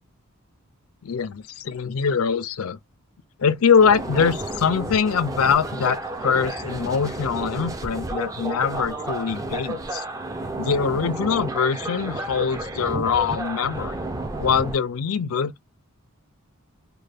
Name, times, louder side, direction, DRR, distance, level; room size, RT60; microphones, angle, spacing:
voice 1, 1.0-2.8 3.4-10.0 10.6-14.0 14.4-15.6, left 6 dB, 75° left, 0.5 m, -23 dB
sound 1, 3.8-14.8, right 2 dB, 15° right, 0.4 m, -31 dB
3.2 x 2.3 x 3.3 m
head